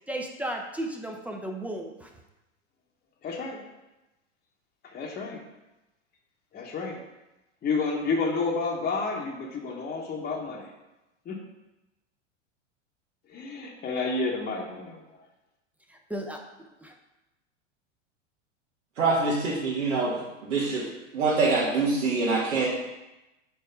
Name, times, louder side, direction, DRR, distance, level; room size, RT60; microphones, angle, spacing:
voice 1, 0.1-2.1 15.9-16.4 16.8-16.9, right 1 dB, 5° right, 1 dB, 0.6 m, -34 dB
voice 2, 3.2-3.6 4.9-5.4 6.5-7.0 7.6-10.7 11.2-11.4 13.3-15.0, left 4 dB, 25° left, -1 dB, 1.0 m, -30 dB
voice 3, 19.0-20.8 21.1-22.7, right 3 dB, 85° right, -7 dB, 1.4 m, -25 dB
4.6 x 4.5 x 5.4 m, 1.0 s
hypercardioid pair, 100°, 37 cm